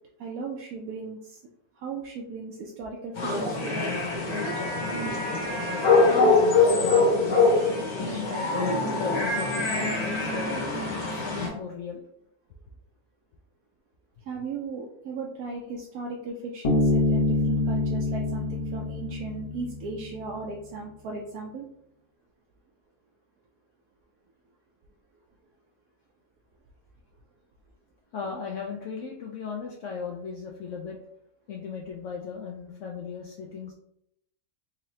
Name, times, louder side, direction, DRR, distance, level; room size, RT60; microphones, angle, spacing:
voice 1, 0.2-1.4 1.8-4.0 4.3-4.4 14.2-21.7, right 4 dB, 80° right, 0 dB, 1.0 m, -37 dB
sound 1, 3.2-11.5, left 3 dB, 85° left, 1.6 m, -24 dB
voice 2, 6.1-8.5 9.0-12.0 28.1-31.0 31.5-33.7, left 5 dB, 70° left, -1 dB, 0.8 m, -36 dB
Bass guitar, 16.6-20.2, left 2 dB, 35° left, 0.9 m, -26 dB
3.8 x 3.2 x 2.7 m, 0.76 s
omnidirectional pair, 1.5 m